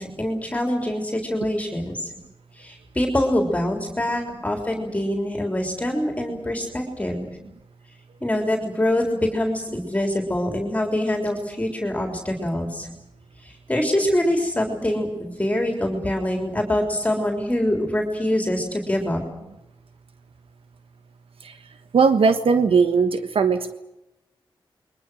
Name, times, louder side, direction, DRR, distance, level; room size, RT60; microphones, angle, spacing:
voice 1, 0.0-2.1 2.5-7.3 8.2-9.0 9.3-12.9 13.4-19.2, left 1 dB, 15° left, 2 dB, 3.8 m, -24 dB
voice 2, 21.9-23.7, right 5 dB, 90° right, 9 dB, 1.3 m, -19 dB
29.5 x 23.0 x 6.3 m, 0.94 s
wide cardioid pair, 135°, 9 cm